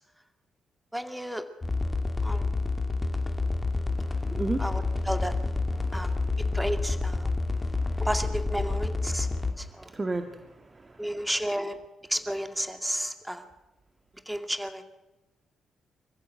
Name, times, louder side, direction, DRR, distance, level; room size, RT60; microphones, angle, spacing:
voice 1, 0.9-1.4 2.2-2.5 4.6-5.3 5.9-6.1 6.5-7.3 8.0-9.3 9.6-9.9 11.0-11.8 12.1-13.4 14.3-14.8, equal, 5° right, 7 dB, 2.4 m, -32 dB
sound 1, 1.6-9.5, left 3 dB, 25° left, 2.5 m, -28 dB
voice 2, 4.0-5.0 5.7-6.6 7.2-8.0 9.3-11.1, right 2 dB, 30° right, 6 dB, 2.0 m, -37 dB
27.0 x 15.0 x 7.7 m, 1.0 s
hypercardioid pair, 40°, 0 cm